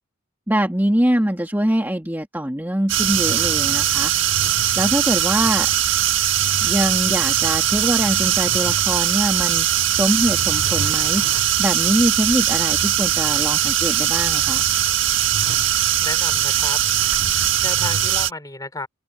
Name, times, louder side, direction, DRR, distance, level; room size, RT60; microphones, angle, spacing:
voice 1, 0.5-4.1 4.8-5.7 6.6-9.7 9.9-14.6, equal, 10° right, 2.1 m, -23 dB
sound 1, 2.9-18.3, right 11 dB, 70° right, 1.8 m, -20 dB
voice 2, 16.0-16.8 17.6-18.9, left 2 dB, 20° left, 4.8 m, -32 dB
open air
head